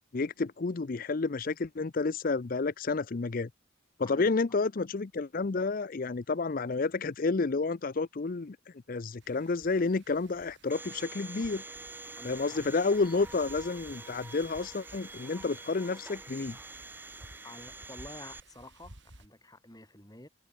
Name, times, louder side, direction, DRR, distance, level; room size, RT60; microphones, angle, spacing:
voice 1, 0.1-3.5 4.0-8.6 8.9-11.6 12.2-16.6, left 3 dB, 45° left, 0.5 m, -30 dB
Wind, 9.2-19.3, right 2 dB, 60° right, 5.6 m, -56 dB
Domestic sounds home sounds, 10.7-18.4, right 2 dB, 10° right, 2.1 m, -46 dB
voice 2, 12.1-12.6 17.4-20.3, left 1 dB, 20° left, 5.1 m, -49 dB
head